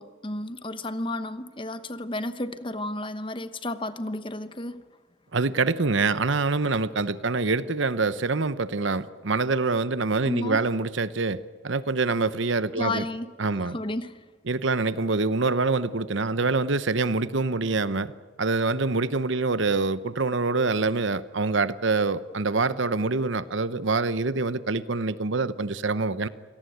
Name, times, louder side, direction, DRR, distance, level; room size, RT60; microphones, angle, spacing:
voice 1, 0.0-4.8 10.3-10.6 12.7-13.3 13.6-14.2, left 2 dB, 25° left, 12 dB, 1.0 m, -32 dB
voice 2, 5.3-13.0 13.4-13.8 14.5-18.1 18.4-26.3, right 3 dB, 60° right, 15 dB, 0.9 m, -25 dB
27.5 x 18.0 x 9.4 m, 1.5 s
head